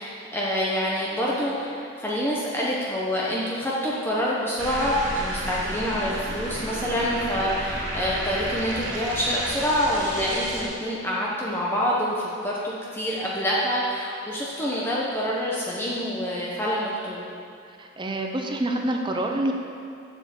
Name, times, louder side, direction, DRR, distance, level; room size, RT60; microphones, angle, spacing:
voice 1, 0.0-17.3, equal, 10° left, -6 dB, 1.1 m, -26 dB
sound 1, 4.6-10.6, right 1 dB, 85° right, 2.4 m, -32 dB
voice 2, 17.7-19.5, right 1 dB, 25° right, 2 dB, 0.8 m, -27 dB
7.9 x 7.2 x 7.1 m, 2.4 s
head